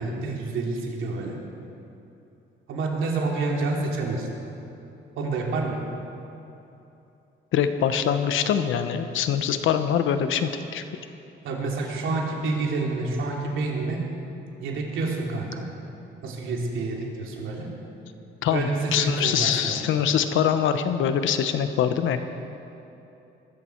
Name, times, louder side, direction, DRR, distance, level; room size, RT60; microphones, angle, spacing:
voice 1, 0.0-1.4 2.7-4.3 5.2-5.9 11.4-14.0 14.6-15.6 16.2-17.7 18.5-19.8, right 3 dB, 85° right, -1 dB, 2.9 m, -28 dB
voice 2, 7.5-10.8 18.4-22.3, left 8 dB, 80° left, 9 dB, 1.0 m, -24 dB
21.5 x 13.5 x 4.6 m, 2.9 s
cardioid pair, 90°, 20 cm